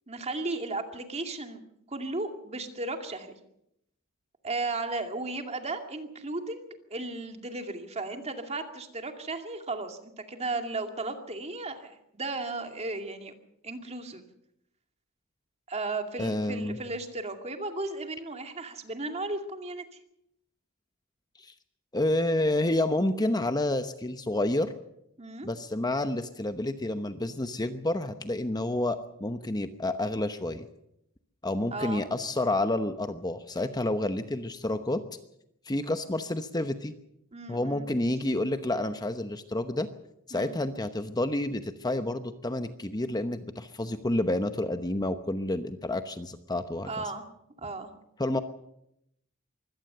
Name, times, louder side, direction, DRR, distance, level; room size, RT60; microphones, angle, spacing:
voice 1, 0.1-1.6 1.9-3.4 4.4-13.3 13.6-14.2 15.7-19.8 25.2-25.5 31.7-32.0 37.3-37.9 40.3-40.6 46.9-47.2 47.6-47.9, right 2 dB, 30° right, 5 dB, 2.3 m, -35 dB
voice 2, 16.2-16.8 21.4-21.5 21.9-24.7 25.4-30.7 31.4-35.0 35.7-36.9 37.5-39.9 40.3-46.9 48.2-48.4, left 1 dB, 20° left, 9 dB, 0.9 m, -29 dB
23.5 x 17.0 x 6.8 m, 0.79 s
head